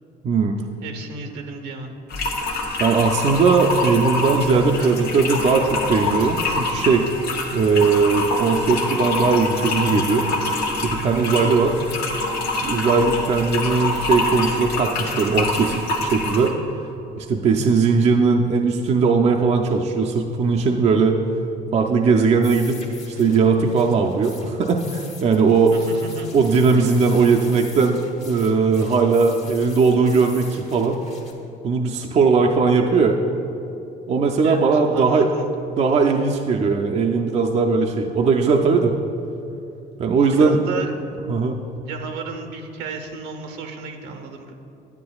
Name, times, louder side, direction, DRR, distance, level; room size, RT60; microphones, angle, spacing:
voice 1, 0.8-1.9 4.8-5.2 25.7-26.3 34.4-34.6 34.9-35.5 40.2-40.9 41.8-44.5, right 4 dB, 85° right, 5 dB, 0.8 m, -33 dB
sound 1, 2.1-16.5, left 2 dB, 75° left, 1.1 m, -25 dB
voice 2, 2.8-7.1 7.5-10.3 10.8-11.8 12.6-16.6 17.1-21.2 21.7-22.8 23.1-25.7 26.3-28.0 28.3-31.0 31.6-33.2 34.1-35.3 35.8-38.9 40.0-40.6 41.3-41.6, right 4 dB, 40° right, 2 dB, 0.5 m, -19 dB
sound 2, 22.4-31.3, left 4 dB, 45° left, 1.2 m, -42 dB
9.5 x 9.3 x 2.3 m, 2.8 s
cardioid pair, 110°, 17 cm